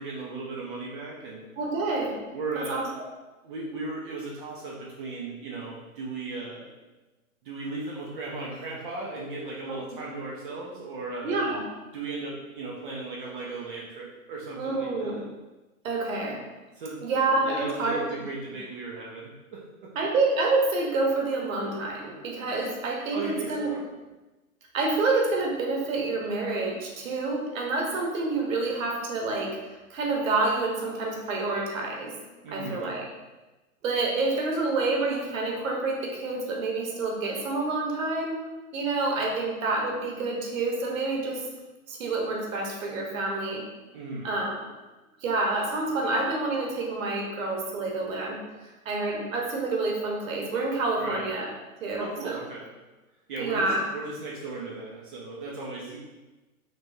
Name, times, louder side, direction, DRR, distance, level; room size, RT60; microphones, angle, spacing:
voice 1, 0.0-1.4 2.3-2.9 3.4-6.7 7.4-11.4 11.9-15.2 16.7-19.9 23.1-23.9 32.4-32.9 43.9-44.3 51.0-51.2 52.0-52.7 53.3-56.0, right 3 dB, 35° right, -4 dB, 0.5 m, -36 dB
voice 2, 1.6-2.2 2.5-3.0 9.7-9.8 11.2-11.6 14.5-15.2 15.8-16.4 17.0-18.0 19.9-23.7 24.7-29.6 29.9-32.1 32.5-33.1 33.8-38.4 38.7-41.4 41.9-43.6 44.2-44.6 45.2-48.4 48.8-51.5 51.8-52.4 53.4-53.8, right 3 dB, 60° right, -1 dB, 1.0 m, -28 dB
3.3 x 3.0 x 2.6 m, 1.1 s
hypercardioid pair, 140°, 44 cm